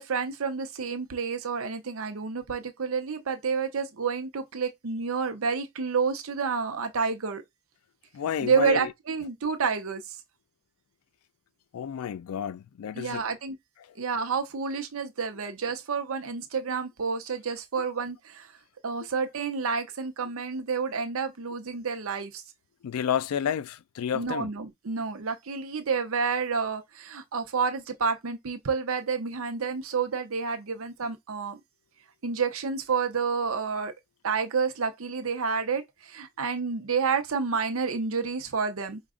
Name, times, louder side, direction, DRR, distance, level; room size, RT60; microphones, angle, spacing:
voice 1, 0.0-7.4 8.4-10.2 12.9-13.6 14.0-18.5 18.8-22.4 24.1-31.6 32.2-33.9 34.2-39.0, right 5 dB, 70° right, 0.7 m, -29 dB
voice 2, 8.1-8.9 11.7-13.2 22.8-24.5, left 8 dB, 85° left, 0.3 m, -30 dB
4.9 x 2.3 x 3.6 m
head